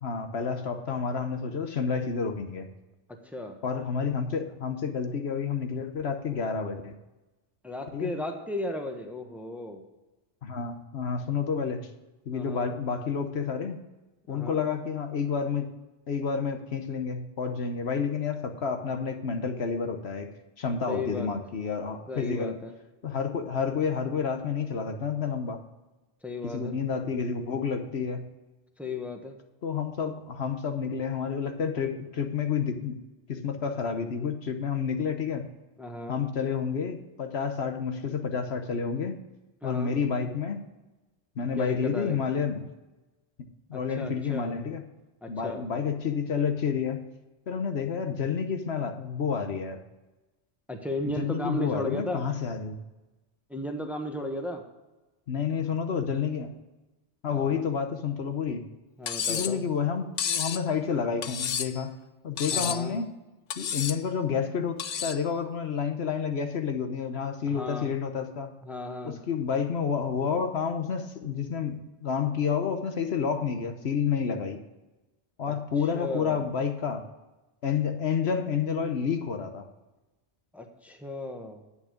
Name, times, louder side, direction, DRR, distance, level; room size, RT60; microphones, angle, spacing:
voice 1, 0.0-2.7 3.6-7.0 7.9-8.1 10.4-11.9 12.3-13.8 14.3-15.7 16.1-20.3 20.6-22.6 23.0-25.6 26.4-28.2 29.6-32.9 33.3-35.5 36.1-39.2 39.6-40.6 41.4-42.6 43.7-44.8 45.3-47.0 47.5-49.8 51.2-52.8 55.3-56.5 57.2-58.6 59.3-61.9 62.2-63.1 63.6-68.5 69.0-74.6 75.4-77.0 77.6-79.7, left 6 dB, 70° left, 6 dB, 1.2 m, -29 dB
voice 2, 3.2-3.6 7.6-9.8 12.3-12.7 14.3-14.6 20.9-21.3 22.1-22.7 26.2-26.7 28.8-29.4 35.8-36.2 39.6-39.9 41.6-42.2 43.7-44.6 45.2-45.6 50.7-52.2 53.5-54.6 57.3-57.6 59.0-59.6 62.5-63.0 67.5-67.9 68.6-69.2 75.5-75.6 75.9-76.5 80.5-81.6, left 1 dB, ahead, 4 dB, 1.1 m, -35 dB
Cutlery silverware, 59.1-59.6 60.2-60.6 61.2-61.8 62.4-62.9 63.5-64.0 64.8-65.2, left 8 dB, 50° left, 0.6 m, -31 dB
9.7 x 8.4 x 5.1 m, 1.1 s
omnidirectional pair, 1.2 m